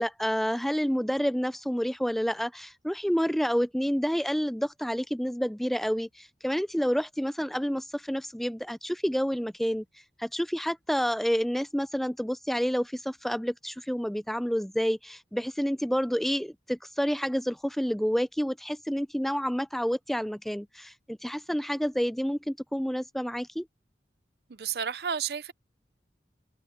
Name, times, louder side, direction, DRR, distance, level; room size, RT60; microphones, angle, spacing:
voice 1, 0.0-9.8 10.2-23.7, equal, ahead, 0.4 m, -29 dB
voice 2, 24.6-25.5, right 7 dB, 65° right, 0.6 m, -31 dB
head